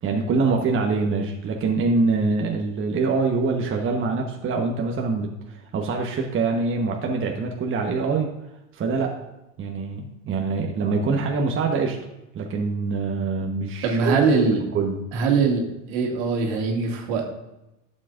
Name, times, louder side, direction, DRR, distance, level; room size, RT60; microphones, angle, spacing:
voice 1, 0.0-8.3 8.8-9.1 9.6-12.0 12.3-14.3 14.7-15.0, right 4 dB, 30° right, 1 dB, 1.2 m, -24 dB
voice 2, 13.8-14.6 15.1-15.6 15.9-17.2, right 4 dB, 70° right, 1 dB, 2.3 m, -21 dB
11.5 x 7.6 x 2.6 m, 0.93 s
hypercardioid pair, 95°, 39 cm